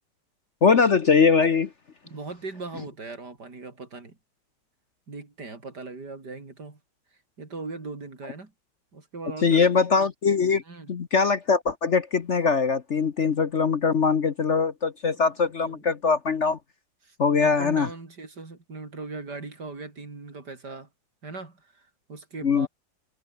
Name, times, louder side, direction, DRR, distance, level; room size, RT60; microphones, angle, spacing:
voice 1, 0.6-1.7 9.4-10.6 10.9-16.6 17.2-17.9 22.4-22.7, left 5 dB, 45° left, 1.2 m, -22 dB
voice 2, 2.0-4.2 5.1-6.8 7.4-8.5 8.9-9.7 10.7-10.9 15.6-15.8 17.0-20.9 21.2-22.7, right 3 dB, 65° right, 4.8 m, -39 dB
omnidirectional pair, 1.9 m